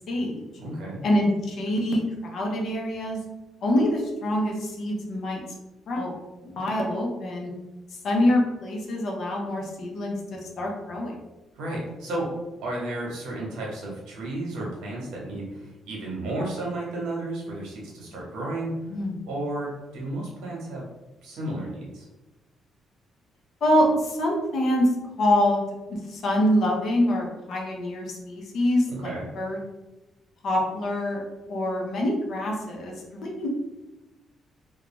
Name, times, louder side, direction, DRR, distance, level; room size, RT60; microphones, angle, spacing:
voice 1, 0.1-0.4 1.0-3.2 3.6-5.4 5.9-6.1 6.4-7.5 8.0-11.2 18.9-19.1 23.6-25.6 25.9-29.6 30.4-31.2 31.5-33.5, left 1 dB, 65° left, 0 dB, 0.7 m, -25 dB
voice 2, 0.6-1.0 11.5-12.3 12.6-18.7 19.3-20.9 21.2-22.1 28.9-29.3, right 2 dB, 90° right, -3 dB, 0.9 m, -33 dB
2.4 x 2.2 x 3.0 m, 1.1 s
cardioid pair, 90°, 0 cm